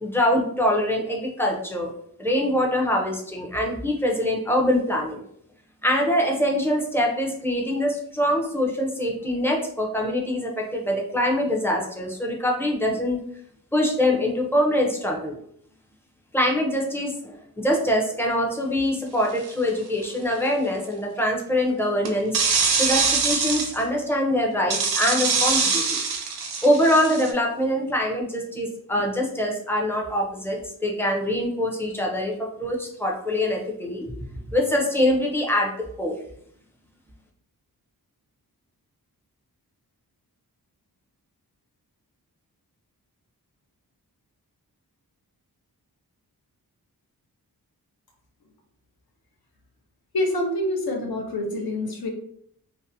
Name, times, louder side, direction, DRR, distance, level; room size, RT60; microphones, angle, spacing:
voice 1, 0.0-1.9 2.2-5.2 5.8-13.2 13.7-15.3 16.3-22.4 22.8-26.0 26.6-34.1 34.5-36.2, left 1 dB, 5° left, 0 dB, 0.5 m, -24 dB
sound 1, 19.4-19.7 22.0-23.8 24.7-27.3, right 5 dB, 80° right, 0.5 m, -23 dB
voice 2, 50.1-52.1, left 1 dB, 75° left, 2 dB, 0.7 m, -26 dB
2.6 x 2.1 x 2.6 m, 0.67 s
wide cardioid pair, 95°, 38 cm